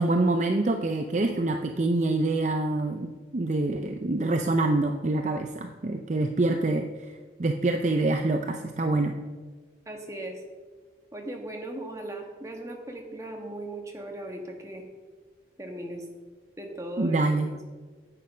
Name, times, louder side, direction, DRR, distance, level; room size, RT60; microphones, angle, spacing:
voice 1, 0.0-9.2 17.0-17.5, right 2 dB, 40° right, 5 dB, 0.5 m, -26 dB
voice 2, 9.9-10.4 11.1-14.8 15.6-16.0 16.6-17.3, right 1 dB, 15° right, 1 dB, 1.4 m, -38 dB
9.8 x 8.5 x 5.5 m, 1.4 s
head